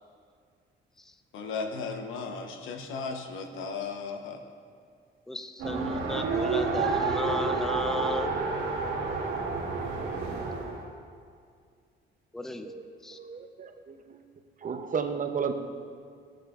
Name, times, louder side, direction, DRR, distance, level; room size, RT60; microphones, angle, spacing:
voice 1, 1.3-4.4, left 4 dB, 85° left, 5 dB, 0.9 m, -35 dB
voice 2, 5.3-8.3 12.3-12.7 13.0-13.2, left 2 dB, ahead, 8 dB, 0.4 m, -35 dB
Race car auto racing, 5.6-10.8, right 4 dB, 80° right, 2.1 m, -29 dB
voice 3, 13.1-14.2 14.6-15.5, right 6 dB, 40° right, 6 dB, 0.7 m, -33 dB
15.5 x 6.3 x 2.5 m, 2.1 s
cardioid pair, 90°, 20 cm